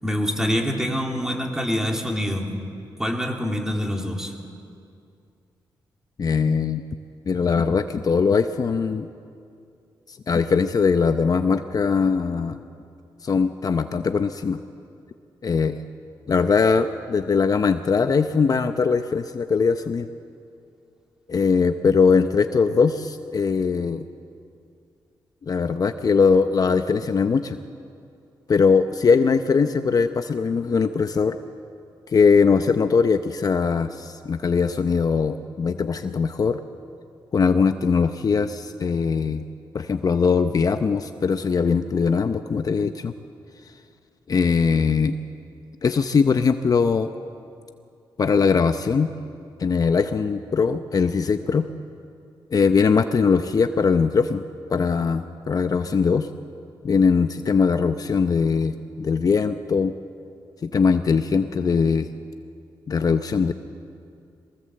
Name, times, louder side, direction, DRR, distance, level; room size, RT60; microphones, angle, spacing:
voice 1, 0.0-2.6 3.0-4.3, equal, 5° right, 1 dB, 3.2 m, -25 dB
voice 2, 6.2-6.8 7.3-9.1 10.3-12.6 13.2-14.6 15.4-15.8 16.3-20.1 21.3-24.0 25.4-27.6 28.5-31.3 32.1-36.6 37.3-39.4 39.7-43.1 44.3-45.2 45.8-47.1 48.2-49.1 49.6-51.7 52.5-54.4 54.7-56.3 56.8-59.9 60.6-62.1 62.9-63.5, left 5 dB, 45° left, 9 dB, 0.7 m, -21 dB
22.5 x 17.5 x 7.8 m, 2.5 s
cardioid pair, 80°, 9 cm